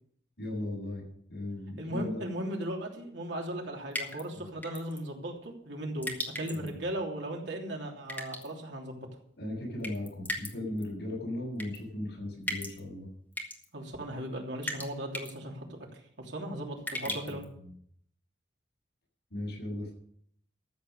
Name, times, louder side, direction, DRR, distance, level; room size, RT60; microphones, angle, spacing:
voice 1, 0.4-1.0 1.3-2.2 4.3-4.4 6.5-6.7 9.4-13.1 17.0-17.7 19.3-19.9, left 1 dB, 65° left, -2 dB, 7.3 m, -37 dB
voice 2, 1.8-9.1 13.7-17.4, right 1 dB, 70° right, 0 dB, 3.1 m, -37 dB
sound 1, 3.9-4.2 4.6-5.0 6.0-6.7 8.1-8.5 9.8-10.5 10.8-10.9 11.6-11.8 12.5-12.8 13.3-13.7 14.6-14.9 15.1-15.3 16.9-17.4, left 1 dB, 10° left, 1.8 m, -36 dB
14.0 x 7.9 x 6.7 m, 0.65 s
head